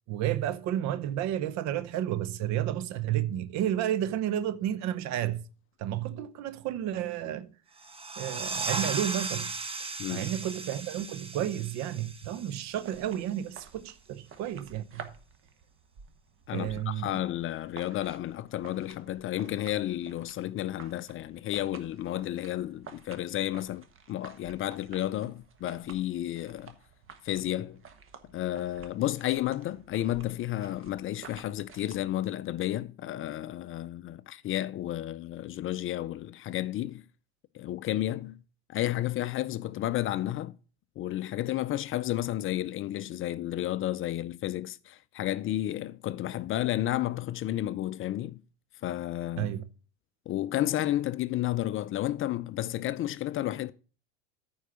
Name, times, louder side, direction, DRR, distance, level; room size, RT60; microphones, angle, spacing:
voice 1, 0.1-5.4 5.8-7.5 8.2-9.5 10.1-15.1 16.5-17.1 49.4-49.7, right 11 dB, 50° right, 0.9 m, -31 dB
sound 1, 7.8-13.1, right 3 dB, 15° right, 1.0 m, -37 dB
sound 2, 12.6-32.0, right 6 dB, 35° right, 1.4 m, -52 dB
voice 2, 16.5-26.7 27.2-27.8 28.3-37.0 37.5-38.4 38.7-40.6 41.0-48.4 48.8-49.5 50.3-53.7, left 13 dB, 35° left, 0.5 m, -32 dB
9.3 x 4.7 x 6.7 m
hypercardioid pair, 90°, 34 cm